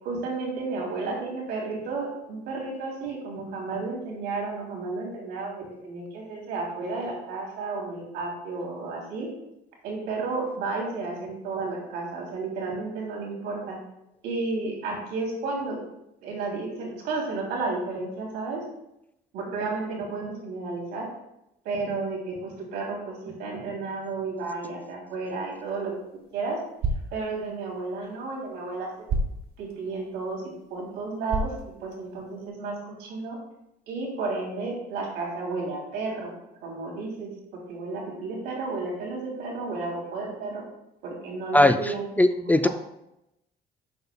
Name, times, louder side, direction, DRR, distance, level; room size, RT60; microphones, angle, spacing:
voice 1, 0.0-9.3 9.8-13.8 14.2-15.8 16.2-18.6 19.3-21.1 21.7-25.9 26.3-26.6 27.1-28.9 29.6-30.4 30.7-31.5 31.8-33.4 33.9-36.3 36.6-40.6 41.0-42.7, right 3 dB, 90° right, -2 dB, 3.3 m, -32 dB
sound 1, 25.6-32.5, right 2 dB, 60° right, 1.5 m, -35 dB
voice 2, 41.5-42.7, left 1 dB, 10° left, 9 dB, 0.4 m, -20 dB
11.5 x 7.8 x 2.3 m, 0.85 s
cardioid pair, 110°, 17 cm